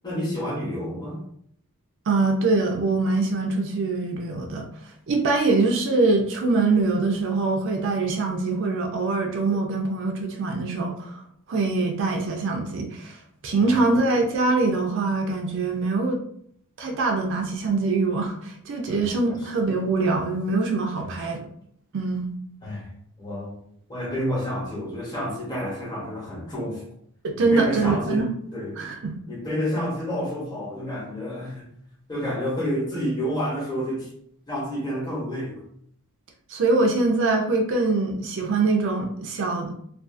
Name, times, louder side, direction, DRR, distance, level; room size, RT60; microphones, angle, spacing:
voice 1, 0.0-1.2 13.5-13.9 18.9-19.5 21.0-21.2 22.6-22.9 23.2-23.6 23.9-26.8 27.4-28.8 29.3-31.7 32.1-34.1 34.5-35.6, equal, 20° left, -4 dB, 0.8 m, -30 dB
voice 2, 2.1-4.7 5.1-11.2 11.5-13.2 13.4-16.2 16.8-21.4 21.9-22.3 27.2-28.3 28.8-29.2 36.5-39.7, right 3 dB, 55° right, 2 dB, 0.4 m, -23 dB
2.4 x 2.3 x 2.4 m, 0.66 s
head